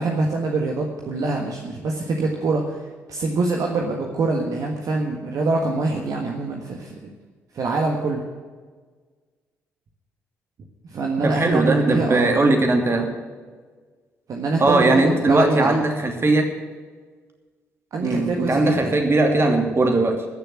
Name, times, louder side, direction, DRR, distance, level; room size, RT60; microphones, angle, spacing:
voice 1, 0.0-7.1 7.5-8.2 10.9-12.4 14.3-15.8 17.9-19.0, right 3 dB, 55° right, 1 dB, 1.5 m, -24 dB
voice 2, 11.2-13.1 14.6-16.5 18.0-20.2, right 2 dB, 35° right, 3 dB, 2.7 m, -19 dB
14.0 x 6.9 x 9.8 m, 1.5 s
figure-of-eight pair, 45°, 7 cm